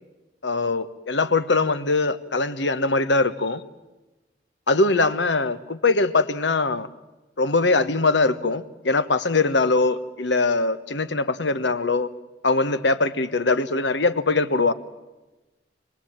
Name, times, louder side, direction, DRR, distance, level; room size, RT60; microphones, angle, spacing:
voice 1, 0.4-3.6 4.7-6.9 7.4-12.1 12.4-14.7, left 3 dB, 90° left, 12 dB, 1.3 m, -22 dB
26.5 x 19.5 x 8.9 m, 1.1 s
head